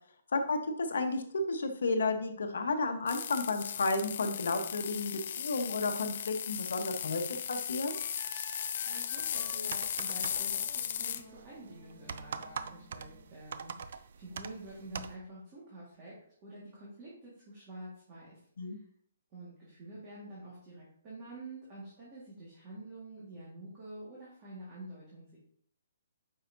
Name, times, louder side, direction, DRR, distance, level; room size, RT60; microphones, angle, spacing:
voice 1, 0.3-1.2 1.5-7.2 7.5-7.9 18.6-18.8, left 3 dB, 70° left, 5 dB, 1.1 m, -32 dB
sound 1, 3.1-11.2, left 9 dB, 35° left, 0.4 m, -37 dB
Wind instrument woodwind instrument, 7.9-13.2, equal, 15° left, 2.8 m, -54 dB
voice 2, 8.8-16.1 16.4-18.8 19.3-25.4, right 1 dB, 20° right, -7 dB, 1.7 m, -48 dB
sound 2, 9.2-15.2, right 6 dB, 45° right, 0.4 m, -44 dB
9.1 x 5.6 x 2.7 m, 0.63 s
hypercardioid pair, 175°, 0 cm